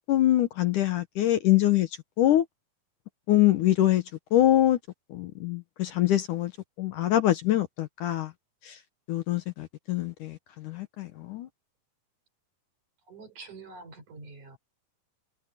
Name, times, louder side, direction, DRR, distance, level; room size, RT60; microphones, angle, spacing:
voice 1, 0.1-1.9 2.2-2.4 3.3-4.0 4.3-4.8 5.1-6.5 6.8-8.3 8.7-8.8 9.1-11.5, left 13 dB, 70° left, 2.3 m, -24 dB
voice 2, 13.1-14.6, right 3 dB, 55° right, 5.9 m, -46 dB
omnidirectional pair, 4.3 m